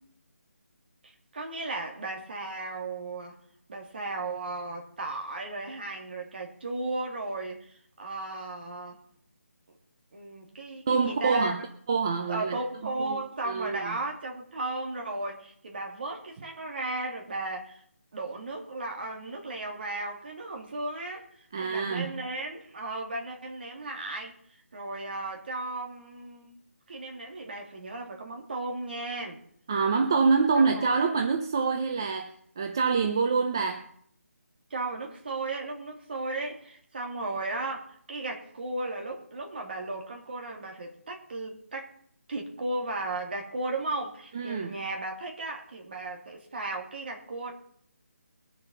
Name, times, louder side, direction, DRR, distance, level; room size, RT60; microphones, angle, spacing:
voice 1, 1.0-3.4 3.7-9.0 10.1-11.5 12.3-17.8 18.1-21.3 21.6-24.3 24.7-26.6 26.9-29.4 30.5-31.0 34.7-41.9 42.3-47.5, right 2 dB, 40° right, 1 dB, 2.9 m, -35 dB
voice 2, 10.9-11.6 11.9-12.6 13.0-13.2 13.4-14.0 21.5-22.1 29.7-33.8 44.3-44.7, right 5 dB, 15° right, 5 dB, 0.5 m, -26 dB
21.0 x 7.1 x 5.5 m, 0.63 s
hypercardioid pair, 175°, 8 cm